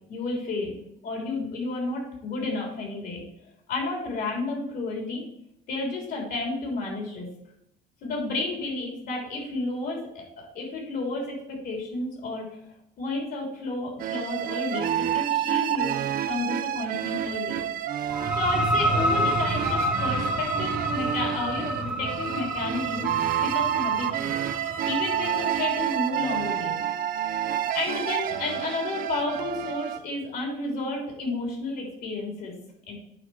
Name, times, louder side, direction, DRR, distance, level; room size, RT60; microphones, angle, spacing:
voice 1, 0.1-0.7 1.0-3.2 3.7-5.2 5.7-7.3 8.0-12.5 13.0-16.0 16.3-17.7 18.3-23.1 23.4-26.8 27.7-32.5 32.9-33.0, left 2 dB, 65° left, 0 dB, 3.8 m, -31 dB
sound 1, 14.0-30.0, right 11 dB, 60° right, 0.7 m, -29 dB
sound 2, 18.1-25.6, equal, 5° right, 1.3 m, -29 dB
8.9 x 5.9 x 5.0 m, 0.75 s
cardioid pair, 110°, 17 cm